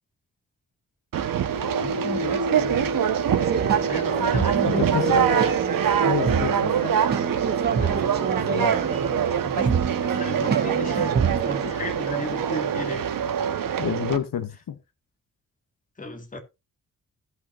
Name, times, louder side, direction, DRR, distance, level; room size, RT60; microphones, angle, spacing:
Conversation, 1.1-14.2, right 9 dB, 90° right, 1.3 m, -25 dB
sound 1, 1.5-13.5, right 2 dB, 70° right, 1.5 m, -34 dB
voice 1, 1.8-3.0 3.9-5.5 7.8-8.0 9.4-13.1 16.0-16.4, left 2 dB, 25° left, 1.9 m, -35 dB
sound 2, 3.4-11.7, right 6 dB, 30° right, 0.5 m, -27 dB
voice 2, 4.7-5.3 6.0-7.0 8.5-8.8 13.8-14.8, left 8 dB, 80° left, 1.1 m, -29 dB
16.5 x 5.8 x 2.6 m
wide cardioid pair, 165°, 33 cm